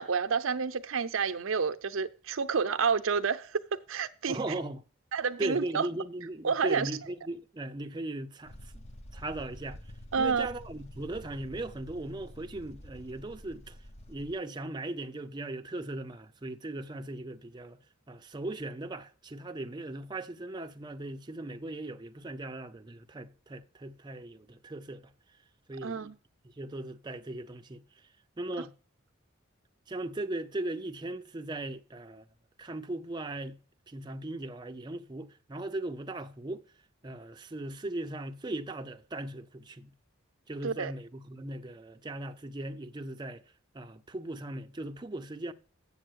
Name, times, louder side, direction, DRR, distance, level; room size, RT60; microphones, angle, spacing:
voice 1, 0.0-3.5 3.9-4.4 5.1-5.9 6.4-6.9 10.1-10.5 25.8-26.2 40.6-40.9, right 5 dB, 80° right, 0.6 m, -29 dB
voice 2, 4.3-4.8 5.4-8.8 9.1-9.8 10.2-13.8 14.1-17.8 18.1-25.1 25.7-26.1 26.6-27.8 28.4-28.7 29.9-32.2 32.6-33.6 33.9-36.6 37.0-39.9 40.5-43.4 43.7-45.5, right 2 dB, 20° right, 0.5 m, -38 dB
sound 1, 8.4-14.3, equal, 35° left, 0.7 m, -48 dB
7.6 x 7.3 x 6.2 m
head